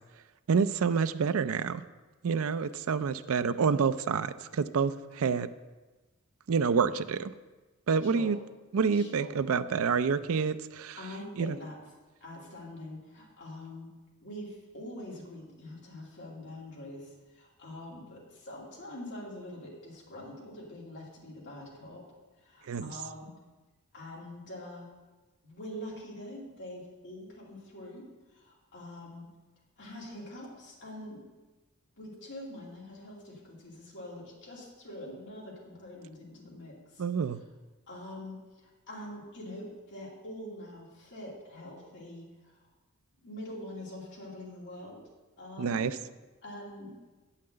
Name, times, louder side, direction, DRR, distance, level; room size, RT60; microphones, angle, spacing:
voice 1, 0.5-1.8 2.2-5.5 6.5-7.3 7.9-8.4 8.7-11.0 11.4-11.6 22.7-22.9 37.0-37.4 45.6-45.9, right 5 dB, 65° right, 13 dB, 0.4 m, -28 dB
voice 2, 8.0-8.3 8.9-9.3 11.0-11.8 12.2-13.9 14.2-22.0 22.4-23.3 23.9-24.9 25.4-28.0 28.3-29.3 29.8-31.2 32.0-37.0 37.9-42.6 43.2-45.1 45.4-46.0 46.4-47.0, left 1 dB, 55° left, -5 dB, 2.8 m, -44 dB
8.4 x 5.8 x 7.7 m, 1.2 s
head